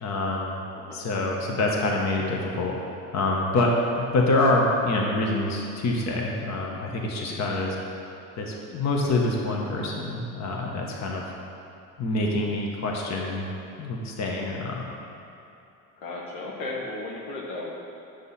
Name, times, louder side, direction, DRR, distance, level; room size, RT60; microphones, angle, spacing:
voice 1, 0.0-0.6 0.9-2.7 3.1-7.7 8.3-11.2 12.0-13.5 13.8-14.8, left 2 dB, 50° left, -1 dB, 1.3 m, -26 dB
voice 2, 0.7-1.1 7.1-7.4 16.0-17.7, left 2 dB, 80° left, -3 dB, 1.2 m, -35 dB
8.1 x 5.4 x 4.2 m, 2.9 s
supercardioid pair, 90°, 36 cm